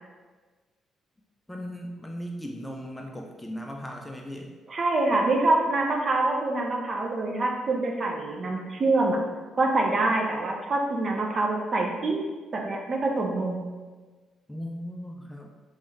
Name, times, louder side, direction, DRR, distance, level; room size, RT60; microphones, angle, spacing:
voice 1, 1.5-4.5 14.5-15.5, equal, 10° left, 1 dB, 0.4 m, -37 dB
voice 2, 4.7-9.2 9.6-12.2 12.5-13.7, right 2 dB, 40° right, 1 dB, 0.6 m, -25 dB
3.4 x 3.1 x 3.2 m, 1.3 s
cardioid pair, 90°, 0 cm